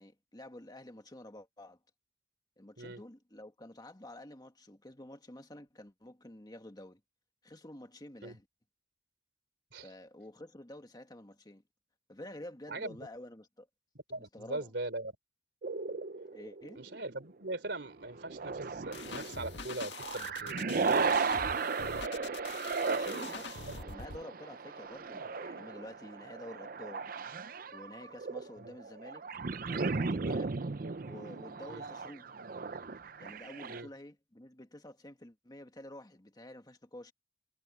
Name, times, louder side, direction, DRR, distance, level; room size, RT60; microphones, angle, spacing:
voice 1, 0.0-1.8 2.6-7.0 7.4-8.5 9.8-11.6 12.1-13.7 14.3-14.7 16.3-16.8 22.9-27.1 27.7-29.2 29.7-30.6 31.0-32.3 33.2-37.1, left 1 dB, 25° left, 1.8 m, -49 dB
voice 2, 14.1-15.1 16.8-21.3 23.7-23.8 28.6-28.8 31.7-31.9 33.7-33.9, right 2 dB, 75° right, 3.5 m, -41 dB
sound 1, 15.6-17.2 18.1-33.8, right 4 dB, 55° right, 0.7 m, -36 dB
sound 2, 18.9-24.2, left 5 dB, 80° left, 1.8 m, -44 dB
head